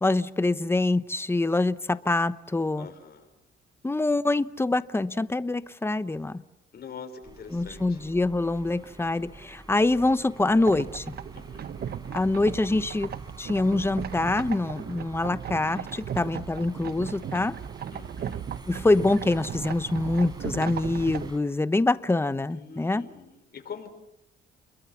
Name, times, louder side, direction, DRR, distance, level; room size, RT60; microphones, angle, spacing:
voice 1, 0.0-2.9 3.8-6.4 7.5-11.0 12.1-13.1 13.4-17.6 18.7-23.1, left 2 dB, 10° left, 0.9 m, -25 dB
voice 2, 2.8-3.3 6.7-8.0 11.3-11.7 17.9-18.4 22.5-23.9, left 6 dB, 55° left, 5.0 m, -44 dB
sound 1, 7.2-21.4, right 2 dB, 20° right, 4.3 m, -47 dB
sound 2, 10.6-21.3, right 9 dB, 55° right, 0.9 m, -37 dB
29.5 x 22.0 x 7.2 m
cardioid pair, 90°, 20 cm